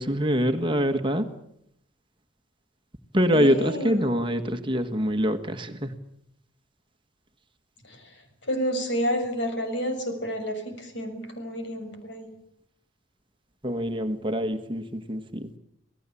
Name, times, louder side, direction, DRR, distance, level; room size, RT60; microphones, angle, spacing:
voice 1, 0.0-1.3 3.1-6.0 13.6-15.5, equal, 25° right, 8 dB, 1.5 m, -25 dB
voice 2, 3.3-4.1 7.9-8.0 8.5-12.3, equal, 60° left, 6 dB, 6.4 m, -30 dB
28.0 x 18.5 x 8.5 m, 0.75 s
head